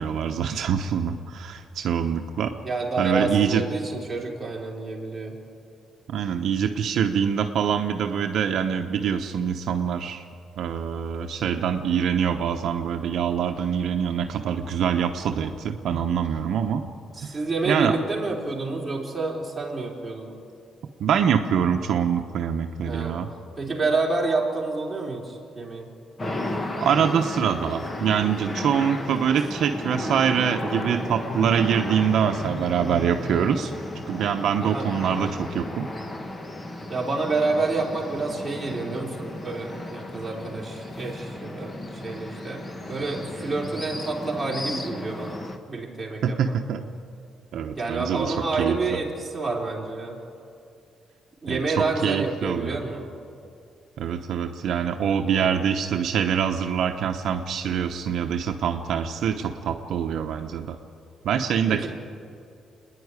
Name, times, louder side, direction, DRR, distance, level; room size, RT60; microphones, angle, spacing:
voice 1, 0.0-2.5 3.0-3.6 6.1-10.2 10.6-16.8 17.7-18.0 21.0-23.3 26.8-33.7 34.1-35.9 46.2-46.9 47.5-48.8 51.5-52.8 54.0-60.8 61.2-61.9, right 7 dB, 65° right, 5 dB, 0.9 m, -24 dB
voice 2, 2.6-5.4 17.2-20.4 22.8-23.2 23.6-25.9 29.4-29.5 34.6-34.9 36.9-46.6 47.8-50.2 51.4-53.0 55.2-55.5 61.7-61.9, right 3 dB, 15° right, -3 dB, 3.7 m, -29 dB
sound 1, 26.2-45.6, left 1 dB, 20° left, 1.4 m, -34 dB
28.5 x 10.0 x 9.7 m, 2.5 s
cardioid pair, 140°, 0 cm